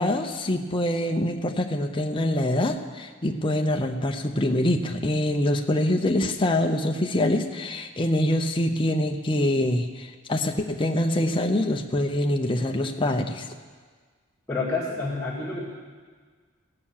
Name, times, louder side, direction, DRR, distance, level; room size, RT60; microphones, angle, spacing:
voice 1, 0.0-13.5, left 1 dB, 25° left, 3 dB, 0.7 m, -25 dB
voice 2, 14.5-15.7, left 3 dB, 5° left, -9 dB, 2.2 m, -28 dB
17.0 x 6.8 x 7.3 m, 1.5 s
head